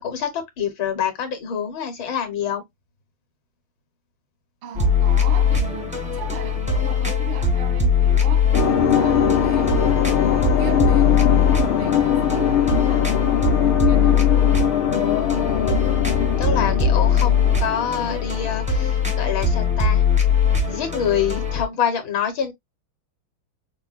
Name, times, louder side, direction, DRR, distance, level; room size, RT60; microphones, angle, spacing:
voice 1, 0.0-2.6 14.9-15.9 16.4-20.0 20.7-22.5, left 8 dB, 70° left, 1.9 m, -26 dB
voice 2, 4.6-9.9 10.2-14.3, right 7 dB, 85° right, 1.8 m, -37 dB
sound 1, 4.7-21.6, left 6 dB, 10° right, 0.4 m, -21 dB
sound 2, 8.5-18.5, left 8 dB, 90° left, 1.7 m, -21 dB
5.8 x 2.2 x 2.4 m
omnidirectional pair, 2.2 m